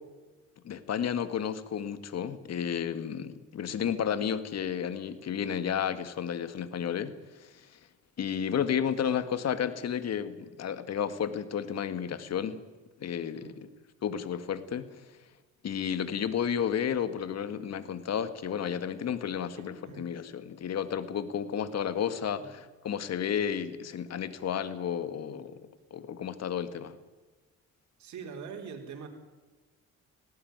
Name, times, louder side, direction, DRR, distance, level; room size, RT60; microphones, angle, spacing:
voice 1, 0.6-7.8 8.2-12.6 13.0-13.5 14.0-15.0 15.6-27.0, left 8 dB, 60° left, 12 dB, 1.9 m, -32 dB
voice 2, 19.4-20.1 22.4-22.5 28.0-29.1, right 6 dB, 70° right, 2 dB, 4.6 m, -44 dB
19.0 x 17.0 x 9.6 m, 1.3 s
cardioid pair, 75°, 29 cm